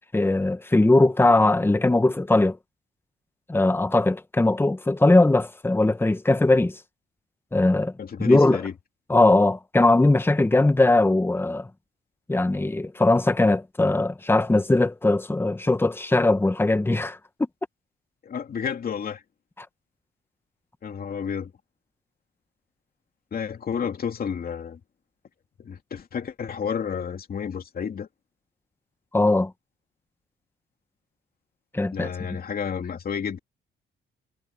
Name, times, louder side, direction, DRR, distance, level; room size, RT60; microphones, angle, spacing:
voice 1, 0.1-2.6 3.5-6.8 7.5-7.9 8.2-8.6 9.1-11.7 12.3-17.2 29.1-29.5 31.7-32.4, left 2 dB, 10° left, 1.2 m, -20 dB
voice 2, 8.0-8.7 18.2-19.2 20.8-21.5 23.3-24.8 25.6-28.1 31.9-33.4, left 7 dB, 50° left, 2.7 m, -31 dB
cardioid pair, 90°, 20 cm